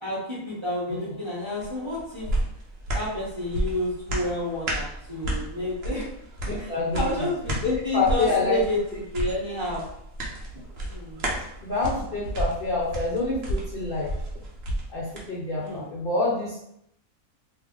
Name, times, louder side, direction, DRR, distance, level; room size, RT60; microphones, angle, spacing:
voice 1, 0.0-2.3 2.9-6.0 6.6-6.7 6.9-9.8 10.9-11.2 15.6-15.9, left 1 dB, 25° right, -8 dB, 0.7 m, -30 dB
sound 1, 1.6-15.3 15.7-15.8, right 1 dB, 55° right, 0.8 m, -32 dB
voice 2, 6.4-7.3 7.6-8.6 11.6-14.1 14.9-16.6, left 3 dB, 50° left, -6 dB, 0.7 m, -27 dB
2.7 x 2.4 x 3.6 m, 0.76 s
omnidirectional pair, 1.5 m